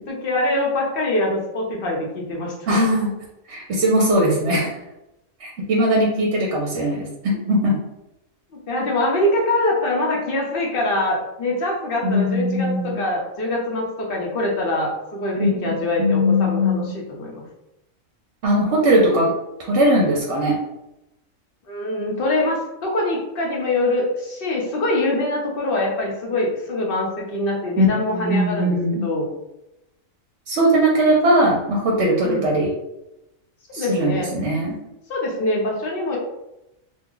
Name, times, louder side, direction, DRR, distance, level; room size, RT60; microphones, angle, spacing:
voice 1, 0.0-2.8 8.5-17.4 21.7-29.3 32.2-32.6 33.7-34.3 35.1-36.2, left 1 dB, 50° left, -2 dB, 0.9 m, -24 dB
voice 2, 2.7-3.1 3.5-4.8 5.4-7.8 12.0-13.0 15.4-15.5 16.0-17.0 18.4-19.3 19.6-20.6 27.8-29.1 30.5-32.7 33.7-34.8, equal, 65° right, -2 dB, 0.9 m, -19 dB
2.8 x 2.2 x 3.7 m, 0.90 s
omnidirectional pair, 1.4 m